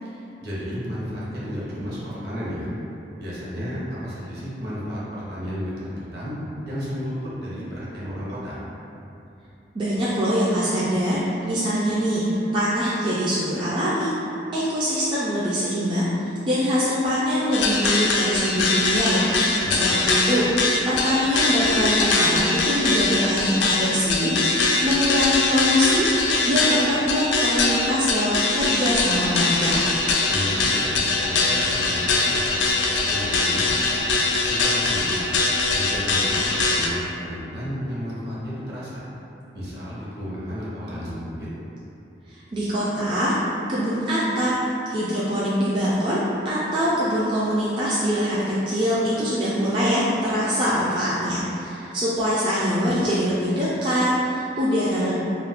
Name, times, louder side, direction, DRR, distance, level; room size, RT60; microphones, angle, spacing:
voice 1, 0.0-2.7 3.2-6.3 6.6-8.6 19.6-20.0 30.3-34.0 34.5-35.3 35.7-39.0 39.5-41.5, equal, 60° right, -8 dB, 0.8 m, -32 dB
voice 2, 9.7-14.1 14.5-19.3 19.8-26.1 26.4-29.9 42.3-43.4 43.7-44.5 44.9-55.2, equal, 30° right, -9 dB, 0.3 m, -23 dB
sound 1, 17.5-36.9, left 3 dB, 90° left, 0.4 m, -22 dB
2.6 x 2.4 x 3.5 m, 2.8 s
head